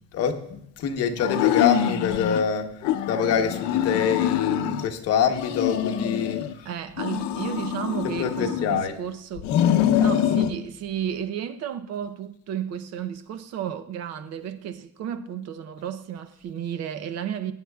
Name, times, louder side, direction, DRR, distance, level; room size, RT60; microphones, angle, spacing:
voice 1, 0.1-2.7 3.1-6.7 8.2-9.0, left 7 dB, 55° left, 1.1 m, -25 dB
sound 1, 1.2-2.4 2.8-4.9 5.3-6.5 7.0-8.9 9.4-10.6, left 10 dB, 75° left, 0.7 m, -25 dB
voice 2, 6.6-17.5, right 9 dB, 60° right, 0.7 m, -33 dB
22.0 x 8.9 x 2.3 m
cardioid pair, 160°, 29 cm